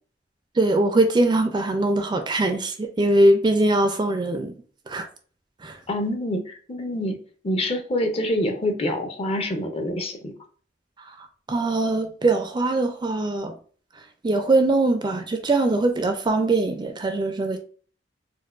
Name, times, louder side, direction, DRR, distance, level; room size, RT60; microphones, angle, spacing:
voice 1, 0.6-4.5 4.9-5.1 5.6-5.8 11.5-13.5 14.2-17.6, right 2 dB, 25° right, 0.4 m, -21 dB
voice 2, 5.9-10.3, left 1 dB, 35° left, 0.5 m, -26 dB
4.4 x 2.1 x 2.4 m
head